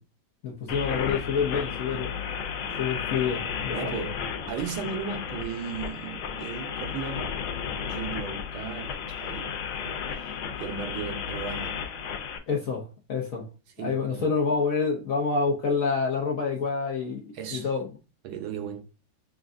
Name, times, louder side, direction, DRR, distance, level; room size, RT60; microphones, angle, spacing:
voice 1, 0.4-2.3 2.6-4.1 12.5-13.5 13.8-17.9, left 5 dB, 60° left, 0.9 m, -28 dB
sound 1, 0.7-12.4, left 7 dB, 85° left, 1.5 m, -33 dB
voice 2, 3.7-4.2 4.5-7.4 7.8-9.5 9.8-10.3 10.6-11.8 13.8-14.3 17.3-17.7 18.2-18.8, right 7 dB, 85° right, 1.6 m, -36 dB
6.3 x 2.3 x 2.5 m
omnidirectional pair, 2.2 m